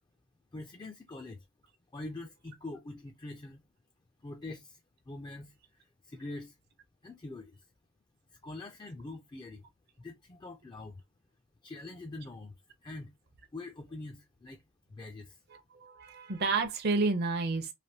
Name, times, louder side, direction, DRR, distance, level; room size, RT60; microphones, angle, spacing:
voice 1, 0.5-1.5 1.9-3.6 4.2-4.8 5.1-6.6 7.0-7.6 8.3-9.7 10.0-11.0 11.6-12.5 12.8-13.1 13.5-14.6 14.9-15.4, left 2 dB, 20° left, 0.3 m, -44 dB
voice 2, 15.5-17.7, right 3 dB, 55° right, 0.6 m, -30 dB
3.3 x 2.5 x 2.7 m
head